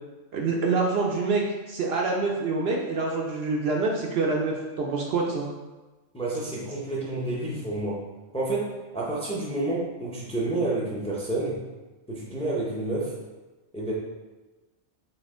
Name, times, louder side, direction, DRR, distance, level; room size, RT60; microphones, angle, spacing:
voice 1, 0.3-5.5, right 3 dB, 65° right, -1 dB, 0.7 m, -26 dB
voice 2, 6.1-8.0 8.3-11.6 12.1-13.2 13.7-13.9, right 2 dB, 5° left, -5 dB, 0.6 m, -29 dB
4.1 x 2.9 x 3.6 m, 1.2 s
omnidirectional pair, 1.3 m